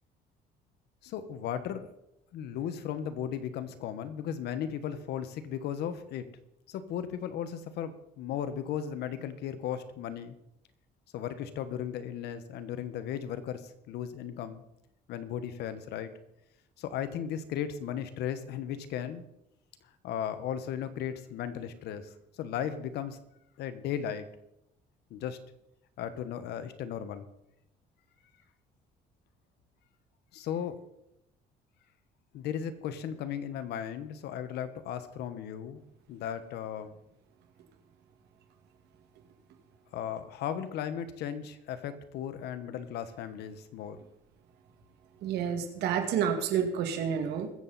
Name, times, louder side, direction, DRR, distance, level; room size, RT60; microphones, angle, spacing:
voice 1, 1.0-1.9 2.3-6.2 6.7-10.4 11.1-14.6 15.1-16.1 16.8-19.2 20.0-22.1 22.4-23.2 23.6-24.3 25.1-25.4 26.0-27.3 30.3-30.8 32.3-35.8 36.1-36.9 39.9-44.0, left 9 dB, 75° left, 11 dB, 1.3 m, -36 dB
voice 2, 45.2-47.5, right 8 dB, 80° right, 6 dB, 2.1 m, -29 dB
21.5 x 7.8 x 4.2 m, 0.83 s
cardioid pair, 110°, 17 cm